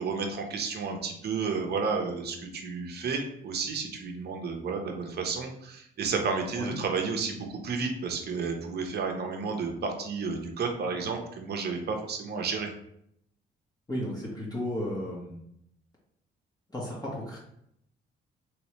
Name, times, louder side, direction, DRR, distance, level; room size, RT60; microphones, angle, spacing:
voice 1, 0.0-12.7, right 4 dB, 55° right, 3 dB, 0.8 m, -31 dB
voice 2, 13.9-15.4 16.7-17.4, left 1 dB, 20° left, -5 dB, 1.1 m, -34 dB
3.1 x 3.0 x 3.0 m, 0.73 s
cardioid pair, 90°, 20 cm